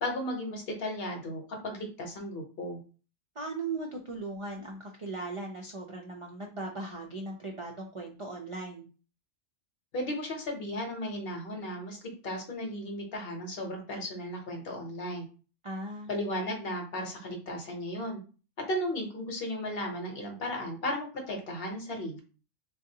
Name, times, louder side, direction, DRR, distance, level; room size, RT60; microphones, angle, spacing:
voice 1, 0.0-2.8 9.9-15.3 16.1-18.2 18.6-22.2, left 1 dB, 60° left, 2 dB, 1.0 m, -35 dB
voice 2, 3.4-8.9 15.6-16.2, right 2 dB, 55° right, 0 dB, 0.3 m, -38 dB
3.6 x 2.3 x 2.7 m, 0.35 s
omnidirectional pair, 1.2 m